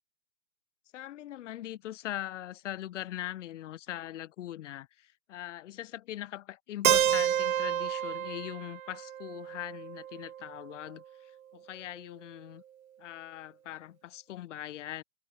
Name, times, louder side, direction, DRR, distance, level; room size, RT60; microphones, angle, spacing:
voice 1, 0.9-12.6 13.0-15.0, left 13 dB, 50° left, 7.4 m, -41 dB
Keyboard (musical), 6.8-10.7, right 10 dB, 55° right, 2.7 m, -30 dB
hypercardioid pair, 135°, 48 cm